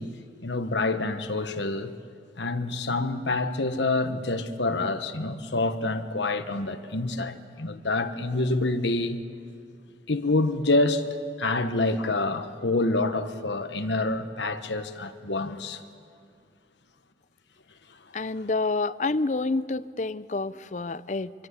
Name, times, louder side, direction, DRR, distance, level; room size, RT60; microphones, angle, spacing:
voice 1, 0.0-1.9 2.4-9.2 10.1-11.1 11.4-15.8, left 2 dB, 75° left, 1.4 m, -27 dB
voice 2, 18.1-21.3, left 3 dB, 40° left, 0.6 m, -28 dB
26.0 x 24.5 x 8.2 m
head